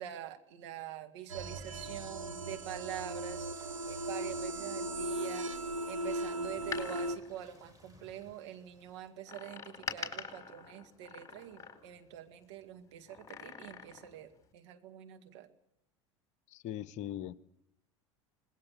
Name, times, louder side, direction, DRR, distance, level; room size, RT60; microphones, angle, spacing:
voice 1, 0.0-15.5, right 11 dB, 65° right, 6 dB, 2.2 m, -45 dB
sound 1, 1.3-9.1, right 3 dB, 20° right, 5.1 m, -57 dB
sound 2, 1.3-7.2, right 1 dB, 85° right, 1.0 m, -38 dB
Door, 6.5-8.3 9.3-12.1 13.1-14.2 14.5-14.6, left 6 dB, 20° left, 4.3 m, -45 dB
voice 2, 16.5-17.3, left 11 dB, 45° left, 19 dB, 0.9 m, -40 dB
26.0 x 20.5 x 6.6 m, 0.79 s
figure-of-eight pair, 75°, 16 cm